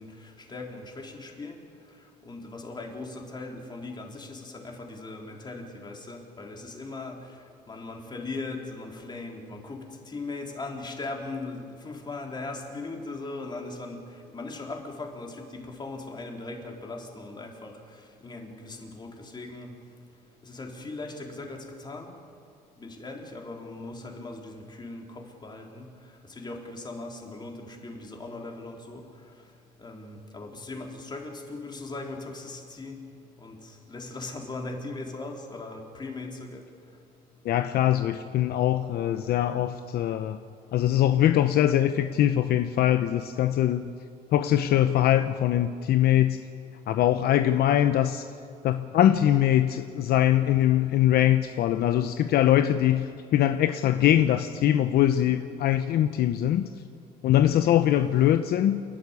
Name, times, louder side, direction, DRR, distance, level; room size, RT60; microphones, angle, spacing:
voice 1, 0.0-1.6 2.2-7.3 7.7-19.7 20.4-22.1 22.8-25.9 26.3-29.0 29.8-33.0 33.4-36.6, left 3 dB, 25° left, 1 dB, 3.7 m, -39 dB
voice 2, 37.4-40.4 40.7-43.9 44.3-46.4 46.9-48.3 48.6-56.7 57.2-58.8, left 11 dB, 70° left, 9 dB, 0.8 m, -22 dB
29.0 x 11.5 x 9.7 m, 2.3 s
cardioid pair, 110°, 17 cm